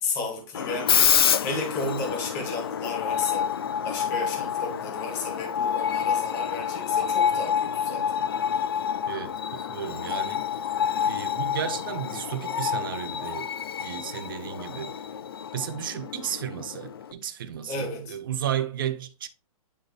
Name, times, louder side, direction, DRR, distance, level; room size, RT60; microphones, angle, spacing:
voice 1, 0.0-3.5 3.8-8.2 17.7-18.1, left 3 dB, 15° left, 1.2 m, -33 dB
Screech, 0.5-17.1, left 8 dB, 40° left, 0.4 m, -28 dB
voice 2, 9.1-10.7 11.0-13.5 13.8-15.0 15.5-19.3, right 9 dB, 35° right, 0.6 m, -33 dB
9.7 x 4.0 x 3.3 m
hypercardioid pair, 180°, 19 cm